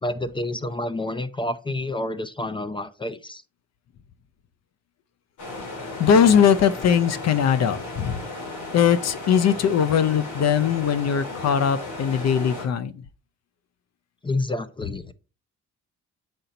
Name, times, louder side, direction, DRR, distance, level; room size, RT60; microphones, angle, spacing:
voice 1, 0.0-3.4 14.2-15.1, left 2 dB, 15° left, 0.5 m, -29 dB
sound 1, 5.4-12.7, left 2 dB, 75° left, 3.6 m, -35 dB
voice 2, 6.0-8.2 8.7-12.9, left 7 dB, 60° left, 0.7 m, -20 dB
7.9 x 4.3 x 4.0 m
cardioid pair, 90°, 30 cm